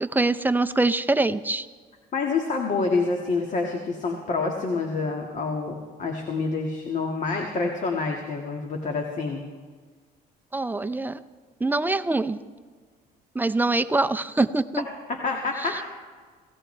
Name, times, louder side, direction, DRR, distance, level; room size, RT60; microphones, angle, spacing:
voice 1, 0.0-1.7 10.5-11.2 11.6-12.4 13.3-14.8 15.6-15.8, right 2 dB, 10° right, 11 dB, 0.6 m, -24 dB
voice 2, 2.1-9.4 15.1-15.8, left 4 dB, 45° left, 2 dB, 1.8 m, -27 dB
26.5 x 16.0 x 3.3 m, 1.5 s
cardioid pair, 110°, 17 cm